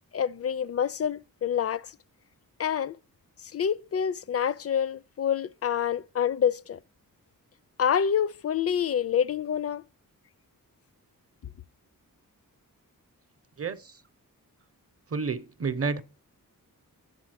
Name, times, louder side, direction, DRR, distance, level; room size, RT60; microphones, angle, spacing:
voice 1, 0.1-2.0 2.6-3.0 3.5-6.8 7.8-9.8, left 8 dB, 45° left, 0.5 m, -27 dB
voice 2, 13.6-14.0 15.1-16.0, right 5 dB, 45° right, 0.7 m, -30 dB
11.0 x 8.3 x 6.3 m
wide cardioid pair, 170°, 34 cm